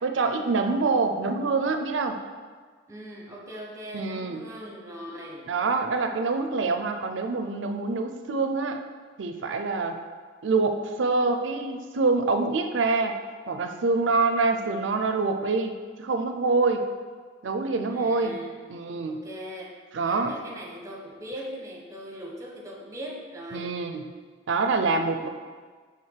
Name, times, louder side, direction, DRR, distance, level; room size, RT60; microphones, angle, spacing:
voice 1, 0.0-2.2 3.9-4.4 5.5-8.8 9.2-10.0 10.4-13.2 13.5-16.9 17.4-18.3 18.7-19.2 19.9-20.4 23.5-24.0 24.5-25.3, right 3 dB, 70° right, 6 dB, 0.5 m, -25 dB
voice 2, 2.9-5.6 14.5-14.6 17.9-18.6 19.1-19.7 20.1-23.8, equal, 15° right, -2 dB, 0.9 m, -40 dB
6.5 x 3.4 x 4.5 m, 1.5 s
head